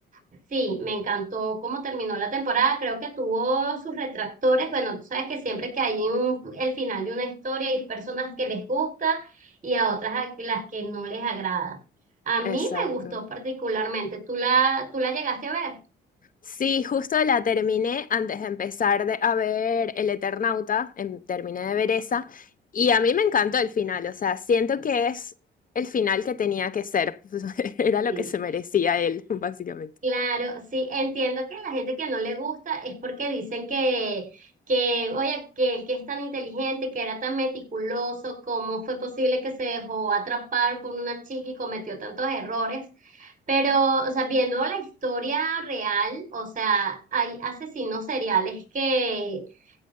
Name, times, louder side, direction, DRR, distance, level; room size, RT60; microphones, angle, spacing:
voice 1, 0.5-9.3 9.6-11.8 12.3-15.8 28.1-28.3 30.0-42.8 43.2-49.4, right 3 dB, 40° right, 4.9 m, -27 dB
voice 2, 12.4-13.2 16.5-22.4 22.7-25.3 25.7-29.9, left 6 dB, 45° left, 0.8 m, -25 dB
16.0 x 6.6 x 3.8 m
cardioid pair, 90°, 20 cm